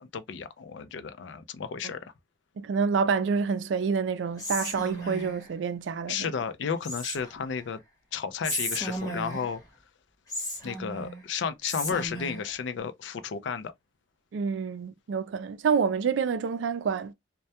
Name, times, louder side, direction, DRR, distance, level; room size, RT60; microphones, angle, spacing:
voice 1, 0.0-2.1 6.1-7.8 8.1-9.6 10.6-13.7, left 6 dB, 80° left, 0.4 m, -33 dB
voice 2, 2.6-6.3 14.3-17.1, right 6 dB, 80° right, 0.3 m, -28 dB
Whispering, 4.4-5.5 6.8-7.5 8.4-9.6 10.3-11.2 11.6-12.5, equal, 20° left, 1.0 m, -34 dB
2.2 x 2.1 x 2.7 m
head